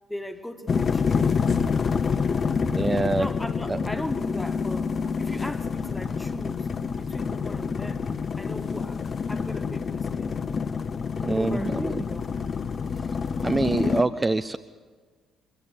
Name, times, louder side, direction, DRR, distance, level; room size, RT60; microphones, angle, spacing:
voice 1, 0.1-1.5 2.3-2.7 3.1-6.7 6.9-8.1 8.4-10.3 11.3-12.3, left 1 dB, 10° left, 8 dB, 1.6 m, -38 dB
sound 1, 0.7-14.0, left 5 dB, 40° left, 0.7 m, -27 dB
voice 2, 2.7-3.3 3.7-3.8 11.2-12.0 13.4-14.6, right 3 dB, 20° right, 9 dB, 0.5 m, -25 dB
22.0 x 15.5 x 8.3 m, 1.5 s
figure-of-eight pair, 45°, 0 cm